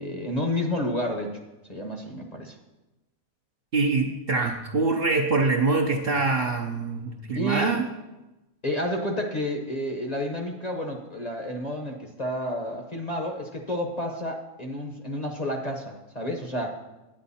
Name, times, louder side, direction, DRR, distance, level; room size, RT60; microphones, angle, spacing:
voice 1, 0.0-1.4 1.7-2.6 7.3-7.8 8.6-16.7, equal, 30° left, 2 dB, 0.9 m, -30 dB
voice 2, 3.7-7.8, right 3 dB, 50° right, 2 dB, 0.8 m, -24 dB
9.8 x 9.1 x 4.2 m, 1.0 s
omnidirectional pair, 1.6 m